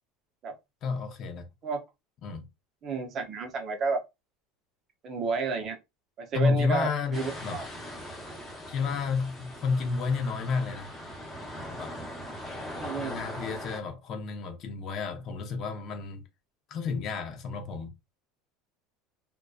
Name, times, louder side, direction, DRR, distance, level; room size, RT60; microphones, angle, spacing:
voice 1, 0.8-1.5 2.2-2.4 6.3-7.6 8.7-10.9 11.7-11.9 13.0-16.2 16.7-17.9, left 5 dB, 40° left, 0.6 m, -31 dB
voice 2, 2.8-4.0 5.0-5.8 6.2-7.6 12.7-13.2, right 4 dB, 35° right, 0.6 m, -31 dB
sound 1, 7.1-13.8, equal, 10° left, 0.9 m, -40 dB
2.5 x 2.1 x 2.3 m
supercardioid pair, 155°, 0 cm